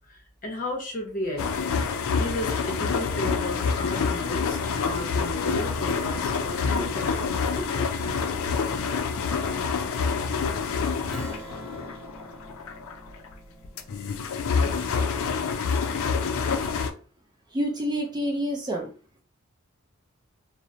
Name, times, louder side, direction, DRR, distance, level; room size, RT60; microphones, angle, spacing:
voice 1, 0.1-1.4 2.1-7.9, left 1 dB, 40° left, 0 dB, 0.9 m, -34 dB
sound 1, 1.4-13.3 13.6-16.9, left 5 dB, 70° left, 0.4 m, -27 dB
Strum, 11.1-16.0, right 1 dB, ahead, 1.1 m, -46 dB
voice 2, 17.5-18.9, equal, 20° right, 1 dB, 0.4 m, -27 dB
2.8 x 2.0 x 2.6 m, 0.39 s
head